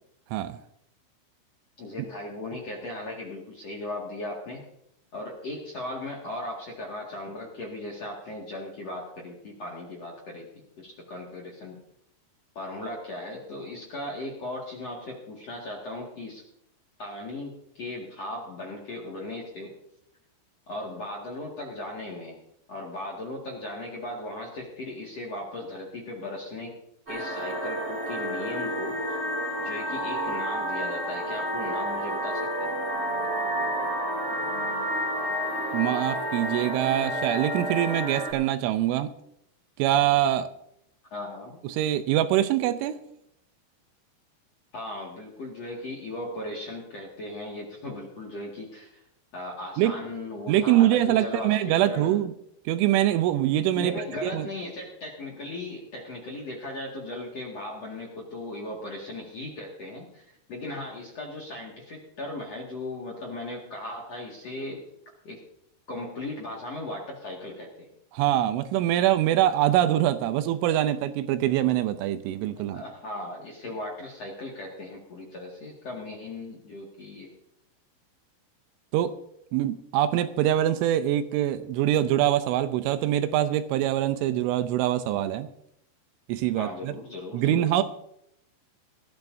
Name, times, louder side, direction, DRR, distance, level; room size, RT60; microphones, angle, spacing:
voice 1, 1.8-4.6 5.1-10.5 10.8-11.8 12.6-16.4 17.0-19.7 20.7-22.4 22.7-26.7 27.1-29.2 29.6-32.7 41.1-41.6 44.7-49.0 49.3-52.1 53.8-64.8 65.2-65.4 65.9-67.7 72.7-77.3 86.6-87.8, left 1 dB, 50° left, -1 dB, 2.1 m, -37 dB
sound 1, 27.1-38.3, equal, 45° right, 0.8 m, -30 dB
voice 2, 35.7-39.1 39.8-40.5 41.6-43.0 49.8-50.0 50.5-52.3 52.7-53.9 54.2-54.5 68.1-72.8 78.9-79.1 79.5-85.5 86.3-86.9 87.3-87.8, right 12 dB, 80° right, 11 dB, 3.0 m, -24 dB
20.0 x 14.0 x 2.7 m, 0.75 s
omnidirectional pair, 5.7 m